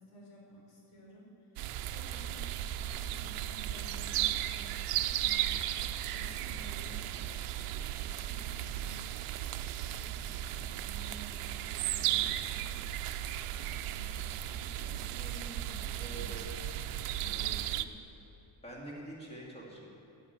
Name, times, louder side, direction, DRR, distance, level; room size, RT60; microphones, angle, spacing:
voice 1, 0.0-2.5 2.7-9.2 9.7-16.4 17.1-17.8, right 1 dB, 80° left, -3 dB, 4.0 m, -53 dB
sound 1, 1.6-17.8, right 12 dB, 85° right, 0.7 m, -35 dB
voice 2, 16.0-17.5 17.8-17.9 18.6-19.9, right 1 dB, 10° left, -4 dB, 2.6 m, -46 dB
11.5 x 10.0 x 8.2 m, 2.9 s
cardioid pair, 160°, 50 cm